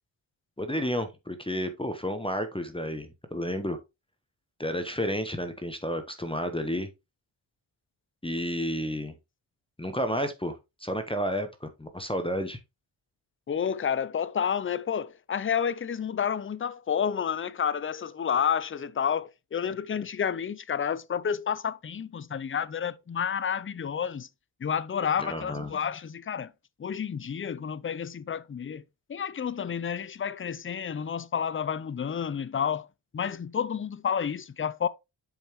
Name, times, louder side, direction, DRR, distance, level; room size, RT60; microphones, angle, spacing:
voice 1, 0.6-3.8 4.6-6.9 8.2-9.1 9.8-12.6 25.2-25.7, equal, 10° left, 1.0 m, -31 dB
voice 2, 13.5-24.3 24.6-26.5 26.8-28.8 29.1-32.9 33.1-34.9, left 7 dB, 25° left, 0.5 m, -30 dB
7.2 x 5.4 x 3.0 m
cardioid pair, 75°, 48 cm